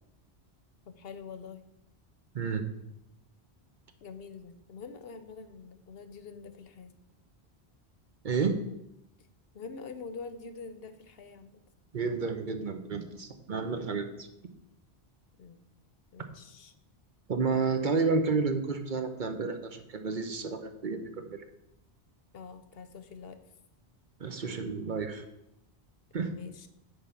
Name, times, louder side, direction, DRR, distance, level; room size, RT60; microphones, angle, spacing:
voice 1, 0.9-1.6 4.0-6.9 9.5-11.6 15.4-15.7 16.1-16.7 22.3-23.4 26.3-26.7, left 5 dB, 65° left, 10 dB, 0.9 m, -45 dB
voice 2, 8.2-8.6 11.9-14.3 17.3-21.4 24.2-25.2 26.1-26.3, right 4 dB, 50° right, 7 dB, 0.9 m, -31 dB
9.6 x 3.6 x 7.0 m, 0.85 s
omnidirectional pair, 1.1 m